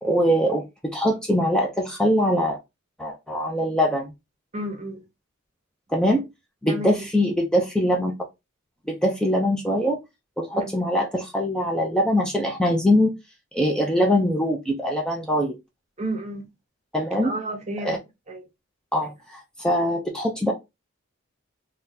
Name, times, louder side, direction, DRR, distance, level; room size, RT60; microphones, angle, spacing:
voice 1, 0.0-2.6 3.0-4.1 5.9-6.2 6.6-8.1 8.9-10.0 10.4-13.1 13.5-15.5 16.9-17.3 17.8-18.0 18.9-20.5, equal, 5° left, 0.4 m, -22 dB
voice 2, 4.5-5.0 6.7-7.1 10.5-10.7 16.0-16.5 17.2-18.4, right 1 dB, 35° right, 0.7 m, -32 dB
3.7 x 2.2 x 2.7 m
head